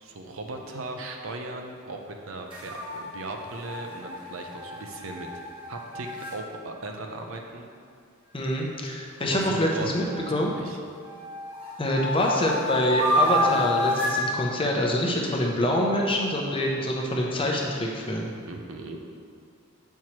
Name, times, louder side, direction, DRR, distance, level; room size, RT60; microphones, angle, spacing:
voice 1, 0.0-5.3 5.7-7.7 8.9-10.2 10.5-10.8 18.5-19.0, right 2 dB, 65° right, 3 dB, 0.5 m, -38 dB
sound 1, 2.5-6.4 9.3-10.5 11.0-14.2, left 1 dB, 25° right, 1.1 m, -29 dB
voice 2, 8.3-10.5 11.8-18.3, left 1 dB, 25° left, -1 dB, 0.6 m, -25 dB
7.4 x 4.5 x 2.9 m, 2.2 s
head